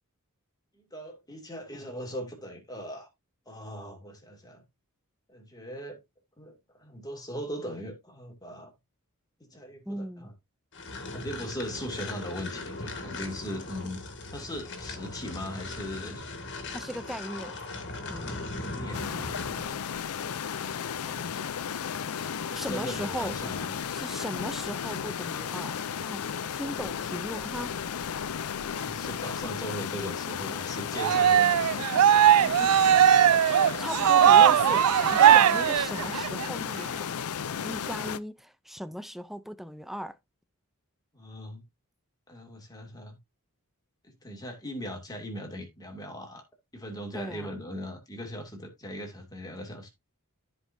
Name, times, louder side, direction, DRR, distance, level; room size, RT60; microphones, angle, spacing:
voice 1, 0.9-3.1 3.5-4.6 5.3-6.0 6.4-8.7 9.4-10.3 11.1-14.0 14.3-16.3 18.5-19.1 19.3-21.3 22.5-23.7 28.8-31.8 32.4-32.8 41.1-41.6 42.3-43.2 44.2-46.4 46.7-49.9, equal, 15° left, 2.4 m, -39 dB
voice 2, 9.9-10.3 16.7-17.6 18.1-18.5 22.5-23.3 23.9-27.8 31.8-32.1 33.4-37.2 37.6-40.2 47.1-47.6, equal, ahead, 0.5 m, -38 dB
sound 1, 10.7-19.7, left 2 dB, 55° left, 2.0 m, -39 dB
sound 2, 18.9-38.2, left 7 dB, 80° left, 0.5 m, -34 dB
Cheering, 31.0-36.5, right 10 dB, 90° right, 0.4 m, -19 dB
14.0 x 5.2 x 2.7 m
head